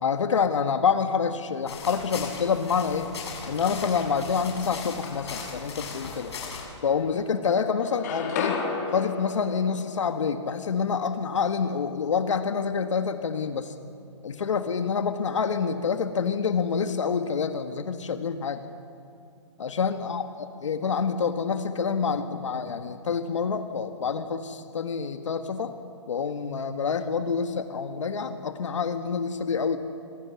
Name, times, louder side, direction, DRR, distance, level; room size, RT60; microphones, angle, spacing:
voice 1, 0.0-3.1 3.5-6.3 6.8-8.6 8.9-13.7 14.2-18.6 19.6-25.7 26.1-29.8, left 6 dB, 75° left, 8 dB, 1.7 m, -27 dB
sound 1, 1.7-6.7, left 5 dB, 60° left, 7.3 m, -38 dB
sound 2, 5.0-5.8 6.3-7.4 7.6-11.6, left 5 dB, 35° left, 4.1 m, -35 dB
27.0 x 26.0 x 7.1 m, 2.5 s
hypercardioid pair, 165°, 16 cm